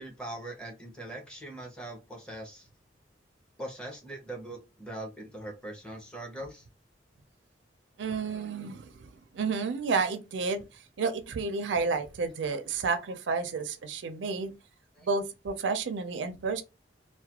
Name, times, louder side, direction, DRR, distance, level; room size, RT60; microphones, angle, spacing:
voice 1, 0.0-2.7 3.6-6.6 12.4-12.6 15.0-15.1, right 1 dB, 5° left, 0.7 m, -41 dB
voice 2, 8.0-10.6 11.0-14.5 15.0-16.6, right 4 dB, 75° right, 0.4 m, -31 dB
2.3 x 2.1 x 2.8 m
head